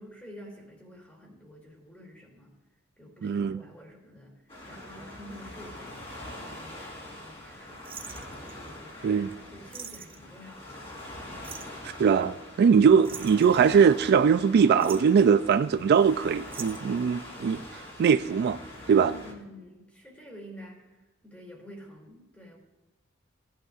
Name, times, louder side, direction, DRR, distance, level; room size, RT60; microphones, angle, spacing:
voice 1, 0.0-2.6 3.0-6.0 6.4-9.2 9.5-11.3 18.9-22.6, equal, 5° left, 2.7 m, -49 dB
voice 2, 3.2-3.6 9.0-9.3 12.0-17.6 18.0-18.6 18.9-19.1, right 6 dB, 50° right, 0.3 m, -21 dB
Waves surf, 4.5-19.3, left 1 dB, 30° left, 3.1 m, -44 dB
sound 1, 7.8-8.7 9.3-9.4 9.7-10.2 11.4-11.8 13.0-14.1 14.6-15.2 16.5-17.0 18.0-18.4 18.7-18.8, right 7 dB, 30° right, 0.7 m, -43 dB
17.0 x 11.0 x 2.5 m
head